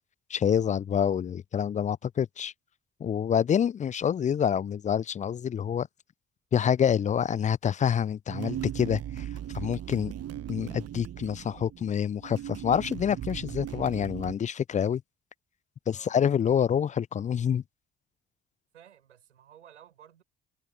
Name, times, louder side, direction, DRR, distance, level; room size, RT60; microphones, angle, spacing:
voice 1, 0.3-2.5 3.0-5.9 6.5-9.3 9.5-10.1 10.5-15.0 15.9-17.6, left 8 dB, 20° left, 0.3 m, -27 dB
sound 1, 8.3-14.3, right 11 dB, 45° right, 1.1 m, -38 dB
voice 2, 18.7-20.2, right 10 dB, 85° right, 6.3 m, -54 dB
figure-of-eight pair, 45°, 35 cm